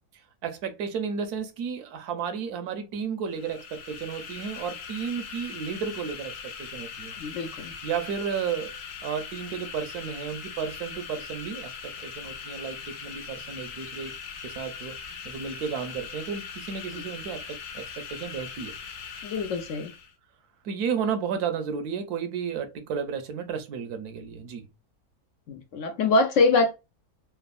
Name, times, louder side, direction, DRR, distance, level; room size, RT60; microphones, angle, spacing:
voice 1, 0.1-7.2 7.8-8.7 9.0-14.1 14.4-15.0 15.2-18.7 20.6-24.7, right 6 dB, 85° right, 1.2 m, -33 dB
sound 1, 3.3-20.1, left 6 dB, 85° left, 1.2 m, -40 dB
voice 2, 7.2-7.7 19.2-19.9 25.5-26.7, left 3 dB, 65° left, 0.8 m, -24 dB
3.4 x 2.0 x 2.3 m
omnidirectional pair, 1.6 m